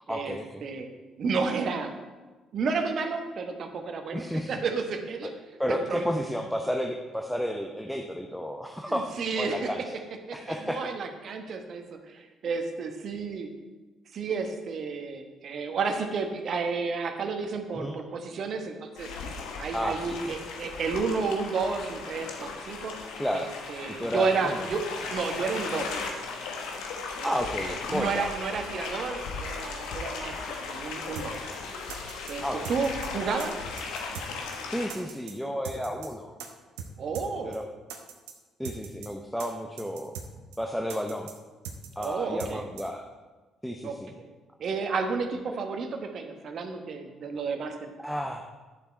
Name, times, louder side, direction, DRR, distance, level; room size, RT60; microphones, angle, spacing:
voice 1, 0.1-0.7 4.1-4.5 5.2-5.3 5.6-9.8 10.3-10.8 17.8-17.9 19.7-20.3 23.2-23.5 23.9-24.7 27.2-28.3 32.4-32.7 34.7-36.3 37.4-37.7 38.6-40.1 40.6-41.3 42.0-43.0 43.6-44.1 45.5-45.6 48.0-48.4, equal, ahead, 3 dB, 0.8 m, -32 dB
voice 2, 1.2-1.9 2.5-5.3 5.7-6.1 8.9-9.7 10.3-13.5 14.1-19.1 19.6-22.9 23.3-24.8 25.1-26.0 27.2-27.4 27.6-31.4 32.3-33.6 37.0-37.6 42.0-42.6 43.8-44.3 44.6-47.8, right 4 dB, 50° right, 6 dB, 1.1 m, -31 dB
sound 1, 18.9-34.9, left 4 dB, 70° left, 1.2 m, -37 dB
sound 2, 31.2-31.3 31.5-31.6 31.9-32.3 32.6-33.1 33.4-33.5 33.8-34.3 34.5-34.6 34.9-35.3 35.6-36.1 36.4-36.5 36.8-36.9 37.1-37.3 37.5-37.6 37.9-38.3 38.6-39.1 39.4-39.5 39.8-40.3 40.5-40.6 40.9-41.3 41.6-42.1 42.4-42.5 42.8-42.9, right 7 dB, 75° right, 0.8 m, -40 dB
10.5 x 6.9 x 4.4 m, 1.3 s
figure-of-eight pair, 45°, 0 cm